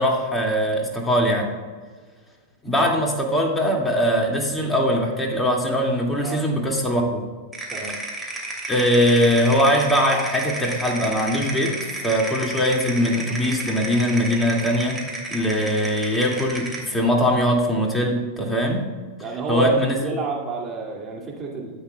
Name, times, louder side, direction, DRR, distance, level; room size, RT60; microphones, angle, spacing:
voice 1, 0.0-1.5 2.6-7.2 8.7-15.0 15.3-18.9 19.5-20.0, equal, 10° left, 0 dB, 2.2 m, -21 dB
sound 1, 7.5-16.9, right 2 dB, 10° right, 2.8 m, -32 dB
voice 2, 19.2-21.8, right 3 dB, 30° right, -1 dB, 2.4 m, -29 dB
13.0 x 8.7 x 2.3 m, 1.5 s
hypercardioid pair, 110°, 0 cm